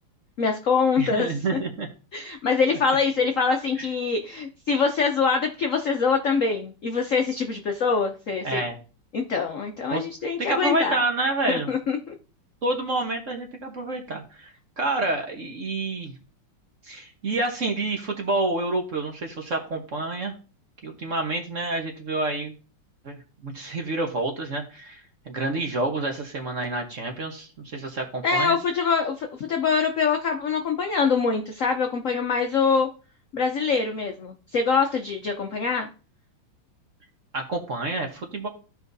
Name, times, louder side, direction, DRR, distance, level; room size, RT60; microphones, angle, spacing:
voice 1, 0.4-1.6 2.1-8.6 9.1-11.0 11.5-12.1 28.2-32.9 33.3-35.9, left 5 dB, 80° left, 4 dB, 0.7 m, -24 dB
voice 2, 1.0-1.9 3.8-3.9 8.4-8.8 9.9-10.0 10.4-11.7 12.6-16.1 16.8-20.3 20.8-22.5 23.0-23.2 23.4-28.6 37.3-38.5, right 2 dB, 45° right, 3 dB, 1.1 m, -28 dB
14.0 x 5.0 x 2.7 m, 0.36 s
omnidirectional pair, 2.4 m